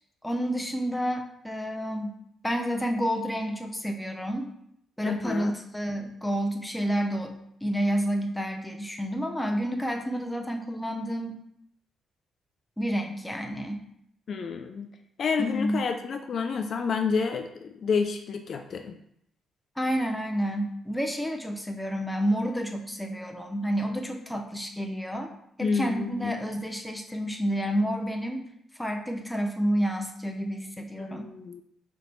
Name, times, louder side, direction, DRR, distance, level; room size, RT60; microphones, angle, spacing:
voice 1, 0.2-2.1 2.4-4.5 5.0-7.4 7.6-11.4 12.8-13.8 15.4-15.9 19.8-25.3 25.6-28.5 28.8-31.3, equal, 5° left, 3 dB, 0.5 m, -29 dB
voice 2, 5.0-5.5 14.3-14.9 15.2-19.0 25.6-26.3 31.0-31.6, left 5 dB, 55° left, 6 dB, 0.3 m, -29 dB
3.3 x 2.9 x 3.9 m, 0.74 s
cardioid pair, 90°, 0 cm